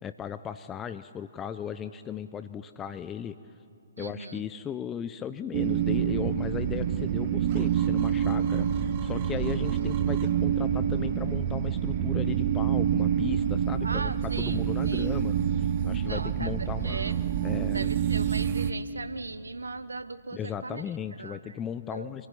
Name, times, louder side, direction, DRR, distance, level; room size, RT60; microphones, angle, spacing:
voice 1, 0.0-3.4 4.0-17.9 20.3-22.3, left 8 dB, 15° left, 11 dB, 0.5 m, -37 dB
voice 2, 4.0-4.4 13.8-15.1 16.0-17.1 17.7-20.8 21.2-21.6 21.9-22.1, right 3 dB, 75° right, 14 dB, 0.9 m, -38 dB
sound 1, 5.5-18.7, right 9 dB, 40° right, 1.1 m, -27 dB
26.0 x 15.0 x 9.8 m, 2.4 s
figure-of-eight pair, 130°, 0 cm